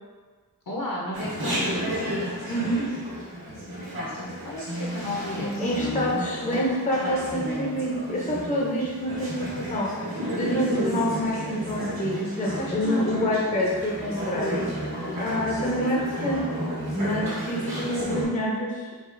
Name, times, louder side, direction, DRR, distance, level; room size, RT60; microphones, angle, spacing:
voice 1, 0.7-1.8 4.4-6.1 12.5-13.2, left 2 dB, 60° left, -3 dB, 0.9 m, -33 dB
Chatter, 1.1-18.2, equal, 70° right, 1.2 m, -32 dB
voice 2, 2.5-2.9 5.6-9.9 10.3-16.5 16.9-18.9, equal, 20° left, -4 dB, 0.6 m, -27 dB
4.8 x 2.4 x 2.6 m, 1.4 s
wide cardioid pair, 70°, 38 cm